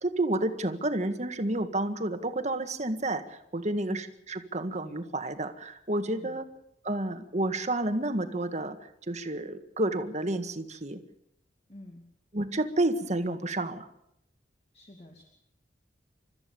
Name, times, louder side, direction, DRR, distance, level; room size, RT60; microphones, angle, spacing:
voice 1, 0.0-6.4 6.8-8.8 9.1-11.0 12.3-13.9, right 1 dB, 40° right, 8 dB, 1.7 m, -30 dB
voice 2, 6.1-6.4 11.7-12.0 14.7-15.2, left 1 dB, 35° left, 2 dB, 2.6 m, -47 dB
29.5 x 14.0 x 7.0 m, 0.81 s
head